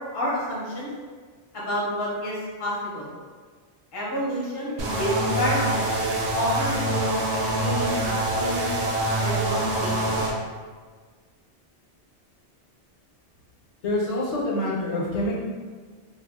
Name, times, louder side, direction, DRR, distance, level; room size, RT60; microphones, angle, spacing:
voice 1, 0.1-0.9 1.5-3.1 3.9-5.9 6.3-7.1 7.6-8.7 9.2-10.2, equal, 30° left, -6 dB, 0.6 m, -29 dB
sound 1, 4.8-10.3, right 1 dB, 65° right, 0.8 m, -25 dB
voice 2, 13.8-15.3, left 1 dB, 75° left, -5 dB, 1.0 m, -26 dB
2.3 x 2.2 x 3.5 m, 1.5 s
omnidirectional pair, 1.2 m